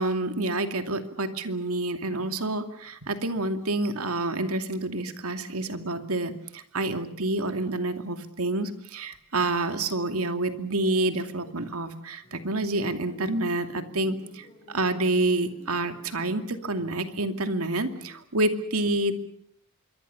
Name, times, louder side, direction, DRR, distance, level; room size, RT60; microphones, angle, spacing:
voice 1, 0.0-19.3, right 2 dB, 80° right, 8 dB, 2.6 m, -28 dB
sound 1, 12.2-18.2, equal, 30° left, 3.7 m, -51 dB
26.5 x 23.5 x 7.0 m, 0.65 s
head